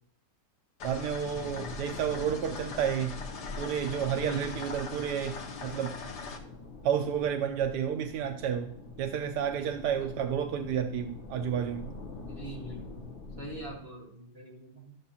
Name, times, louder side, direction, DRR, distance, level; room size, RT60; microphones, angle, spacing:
sound 1, 0.8-6.4, left 4 dB, 80° left, 1.7 m, -41 dB
voice 1, 0.8-3.2 3.6-6.0 6.8-11.9, right 8 dB, 80° right, 6 dB, 1.2 m, -31 dB
sound 2, 1.2-13.7, left 4 dB, 40° left, 1.1 m, -45 dB
voice 2, 4.2-4.7 10.0-10.1 12.2-13.0 13.4-15.0, right 3 dB, 35° right, -3 dB, 1.9 m, -43 dB
13.0 x 6.9 x 2.9 m, 0.66 s
omnidirectional pair, 1.8 m